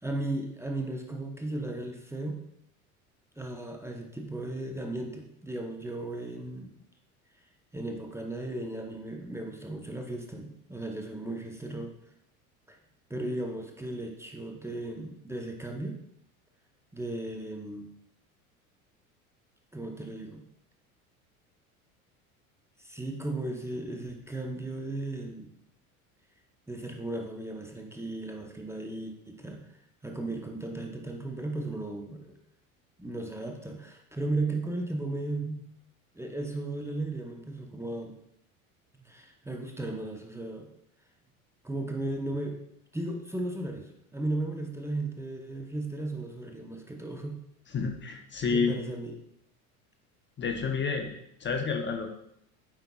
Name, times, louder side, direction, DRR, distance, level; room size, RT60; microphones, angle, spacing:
voice 1, 0.0-2.4 3.4-6.7 7.7-11.9 12.7-12.8 13.1-16.0 16.9-17.9 19.7-20.4 22.8-25.5 26.7-29.7 30.0-32.3 33.0-35.6 36.1-38.2 39.0-40.7 41.6-42.6 42.9-47.4 48.5-49.2, right 2 dB, 5° right, 2 dB, 0.8 m, -35 dB
voice 2, 47.7-48.7 50.4-51.1 51.4-52.1, left 5 dB, 25° left, 4 dB, 0.8 m, -29 dB
8.8 x 5.7 x 2.3 m, 0.74 s
hypercardioid pair, 75°, 43 cm